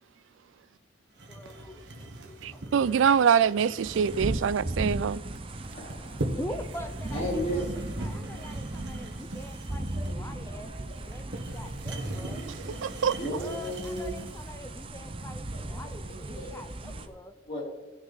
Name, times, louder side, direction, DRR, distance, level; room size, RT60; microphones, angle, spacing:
sound 1, 1.2-14.5, right 1 dB, 65° right, 1.4 m, -40 dB
voice 1, 1.3-3.1 4.1-4.2 6.4-12.4 13.1-17.3, left 1 dB, 15° left, 0.6 m, -44 dB
voice 2, 2.4-5.2 12.8-13.2, right 7 dB, 90° right, 0.4 m, -24 dB
sound 2, 3.8-17.1, right 1 dB, 30° right, 0.7 m, -37 dB
voice 3, 5.7-6.2 7.1-7.8 9.9-10.8 11.3-11.4 12.3-12.4 13.2-14.1 15.5-16.6 16.9-17.0 17.5-17.6, equal, 35° left, 3.8 m, -36 dB
17.5 x 6.1 x 4.0 m
head